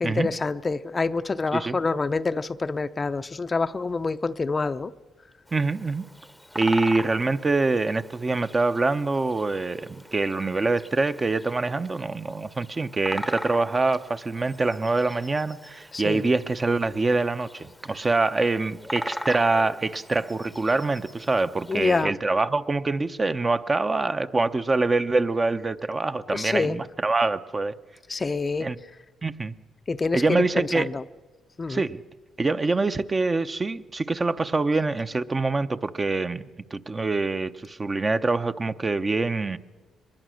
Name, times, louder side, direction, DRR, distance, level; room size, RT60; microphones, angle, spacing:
voice 1, 0.0-4.9 15.9-16.2 21.7-22.1 26.3-26.8 28.1-28.7 29.9-31.0 31.6-31.8, left 3 dB, 30° left, 11 dB, 0.6 m, -26 dB
Bird vocalization bird call bird song, 5.5-22.0, equal, ahead, 0.8 m, -41 dB
voice 2, 5.5-6.0 6.5-27.7 28.6-28.8 29.2-29.5 30.1-30.9 31.7-32.0 32.4-39.6, right 3 dB, 25° right, 10 dB, 0.7 m, -25 dB
23.0 x 20.5 x 6.4 m, 1.3 s
cardioid pair, 90°, 0 cm